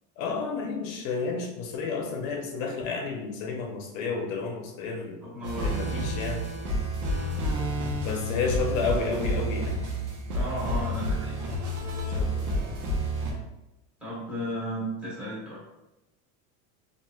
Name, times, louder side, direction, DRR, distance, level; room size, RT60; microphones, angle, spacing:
voice 1, 0.2-5.2 5.6-6.4 8.0-9.8 12.0-12.8, left 4 dB, 80° left, 3 dB, 0.7 m, -31 dB
voice 2, 5.2-5.7 10.3-11.4 14.0-15.6, equal, 5° right, -8 dB, 1.0 m, -34 dB
sound 1, 5.4-13.3, equal, 70° right, 0.8 m, -29 dB
3.0 x 2.5 x 2.3 m, 0.98 s
cardioid pair, 145°, 40 cm